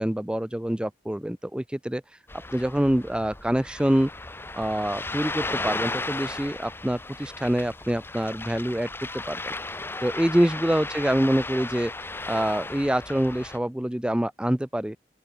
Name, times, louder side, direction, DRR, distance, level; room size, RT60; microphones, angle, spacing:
voice 1, 0.0-2.0 2.5-4.1 4.5-8.9 9.1-9.5 10.0-11.9 12.3-15.0, right 1 dB, 5° right, 0.4 m, -25 dB
Ocean, 2.3-13.6, left 2 dB, 15° left, 0.8 m, -35 dB
open air
head